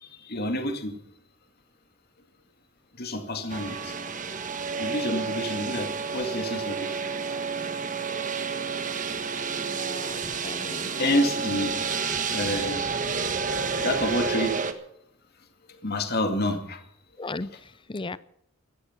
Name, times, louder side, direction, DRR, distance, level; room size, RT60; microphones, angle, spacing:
voice 1, 0.0-1.0 3.0-3.9 4.8-7.0 11.0-11.8 12.3-12.9 13.8-14.6 15.7-16.8, left 1 dB, 45° left, 6 dB, 2.2 m, -28 dB
sound 1, 3.5-14.7, right 5 dB, 35° right, 1.4 m, -30 dB
voice 2, 9.6-10.9 17.2-17.5 17.9-18.2, left 3 dB, 25° left, 17 dB, 0.6 m, -36 dB
16.0 x 13.5 x 6.0 m, 0.74 s
head